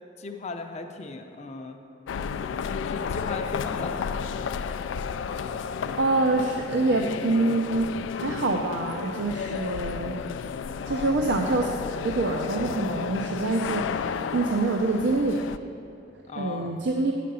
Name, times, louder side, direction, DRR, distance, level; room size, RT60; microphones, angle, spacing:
voice 1, 0.2-1.8 2.8-4.2 10.8-11.2 16.3-16.8, left 3 dB, 35° left, 5 dB, 0.6 m, -37 dB
sound 1, 2.1-15.6, left 6 dB, 85° left, 0.3 m, -32 dB
voice 2, 5.9-10.2 10.9-11.7 12.0-15.4 16.4-17.1, right 2 dB, 70° right, 1 dB, 0.5 m, -26 dB
8.5 x 5.1 x 6.8 m, 2.5 s
head